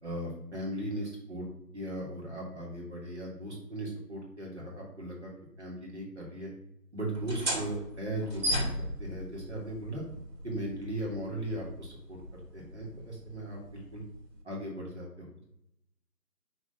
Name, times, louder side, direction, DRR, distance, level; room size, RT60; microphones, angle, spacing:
voice 1, 0.0-1.5 1.7-5.3 5.6-6.5 6.9-8.7 9.0-10.0 10.4-12.2 12.5-14.0 14.4-15.5, right 1 dB, 45° right, -3 dB, 2.2 m, -38 dB
sound 1, 7.1-14.4, equal, 80° right, 2.3 m, -37 dB
6.0 x 3.6 x 5.4 m, 0.82 s
figure-of-eight pair, 175°, 49 cm